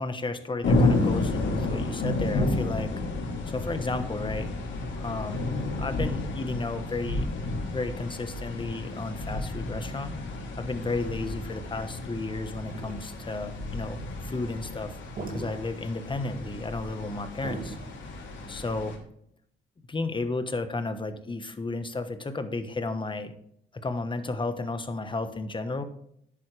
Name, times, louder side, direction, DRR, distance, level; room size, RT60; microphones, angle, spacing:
voice 1, 0.0-2.9 3.5-4.5 4.9-5.5 5.8-7.3 7.7-10.2 10.6-15.0 15.3-17.8 18.5-19.0 19.9-23.3 23.7-25.8, left 3 dB, 25° left, 9 dB, 1.2 m, -33 dB
sound 1, 0.6-19.0, left 2 dB, 70° left, 3.1 m, -31 dB
sound 2, 12.6-18.9, right 2 dB, 45° right, 2.6 m, -40 dB
11.0 x 8.7 x 3.4 m, 0.71 s
cardioid pair, 90°, 20 cm